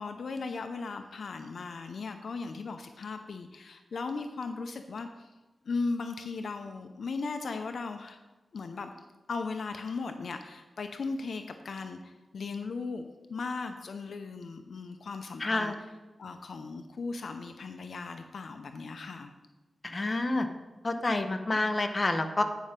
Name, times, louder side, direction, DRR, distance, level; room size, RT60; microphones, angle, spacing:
voice 1, 0.0-5.3 5.6-8.2 8.5-8.9 9.3-15.7 16.2-19.3, left 4 dB, 70° left, 7 dB, 0.6 m, -37 dB
voice 2, 15.4-15.8 19.8-20.5 20.8-22.4, left 2 dB, 30° left, 6 dB, 0.8 m, -28 dB
9.1 x 5.4 x 5.1 m, 1.1 s
wide cardioid pair, 95°, 0 cm